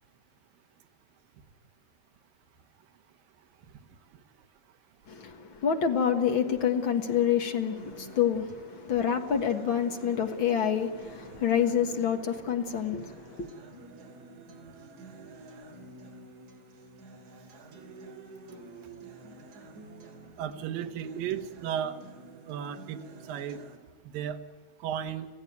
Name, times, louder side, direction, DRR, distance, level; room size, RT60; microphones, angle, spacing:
voice 1, 5.1-13.5, left 8 dB, 50° left, 1.5 m, -27 dB
Acoustic guitar, 7.8-23.8, right 2 dB, 55° right, 4.7 m, -49 dB
voice 2, 20.4-22.0 22.5-23.0 23.3-23.6 24.0-24.4 24.8-25.3, right 9 dB, 70° right, 3.0 m, -34 dB
26.5 x 16.0 x 9.4 m
omnidirectional pair, 4.4 m